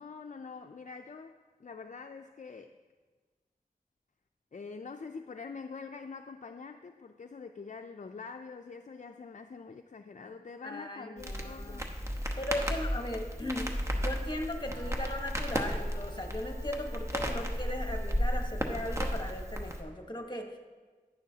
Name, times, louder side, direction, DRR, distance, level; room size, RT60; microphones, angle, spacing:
voice 1, 0.0-2.7 4.5-11.9, left 5 dB, 55° left, 6 dB, 0.4 m, -45 dB
voice 2, 10.6-11.9 12.4-20.6, left 1 dB, 30° left, 3 dB, 1.2 m, -38 dB
Crackle, 11.2-19.8, equal, 20° right, 1.0 m, -34 dB
Wind instrument woodwind instrument, 14.6-18.3, left 1 dB, 70° right, 1.1 m, -53 dB
11.0 x 10.5 x 2.8 m, 1.4 s
wide cardioid pair, 55°, 15 cm